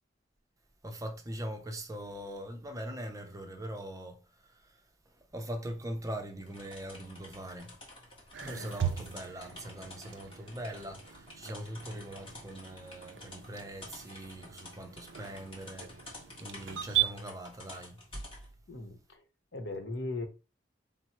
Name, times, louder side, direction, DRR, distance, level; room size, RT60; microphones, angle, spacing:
voice 1, 0.8-4.6 5.3-7.8 8.4-15.9 16.4-18.3, right 1 dB, 20° right, 0.5 m, -41 dB
sound 1, 6.4-18.5, left 2 dB, 30° left, 1.3 m, -51 dB
sound 2, 8.3-17.1, right 12 dB, 75° right, 0.4 m, -38 dB
voice 2, 18.7-19.2 19.5-20.3, left 2 dB, 70° left, 0.9 m, -38 dB
4.3 x 2.0 x 4.3 m
head